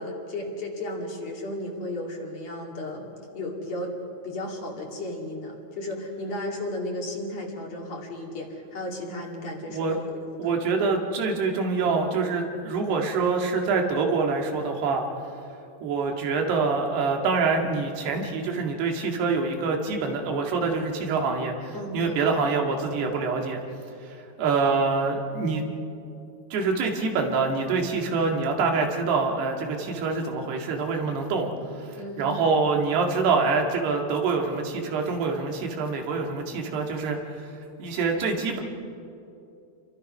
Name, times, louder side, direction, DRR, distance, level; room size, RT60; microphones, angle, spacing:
voice 1, 0.0-3.1 3.3-3.9 4.2-10.7 21.7-22.3 31.9-32.6, left 1 dB, 45° left, 0 dB, 3.4 m, -34 dB
voice 2, 10.4-15.1 15.8-23.6 24.1-25.6 26.5-31.5 31.8-37.2 37.8-38.6, right 4 dB, 90° right, 2 dB, 4.2 m, -25 dB
29.5 x 23.0 x 5.5 m, 2.7 s
omnidirectional pair, 4.5 m